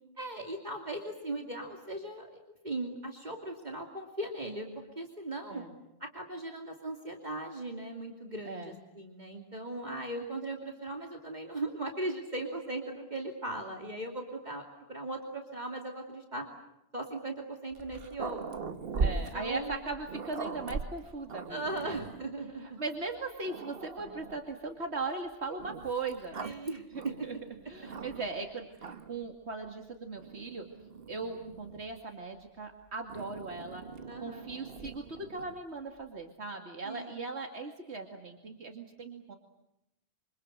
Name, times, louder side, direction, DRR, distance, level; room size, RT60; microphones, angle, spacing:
voice 1, 0.2-5.6 6.0-16.5 16.9-18.6 19.0-19.8 21.5-22.8 26.4-26.8 34.1-34.5 36.8-37.2, right 2 dB, 40° right, 2 dB, 2.9 m, -38 dB
voice 2, 8.4-8.8 19.0-22.0 22.6-26.7 27.2-27.4 27.7-30.6 31.1-33.8 34.2-39.3, right 3 dB, 85° right, 3 dB, 2.5 m, -39 dB
Growling, 17.7-22.3 23.0-23.1 23.4-24.5 25.6-28.4 28.7-29.3 30.2-32.0 33.1-35.6, right 4 dB, 60° right, 1.4 m, -40 dB
27.5 x 26.0 x 7.9 m, 0.87 s
omnidirectional pair, 1.1 m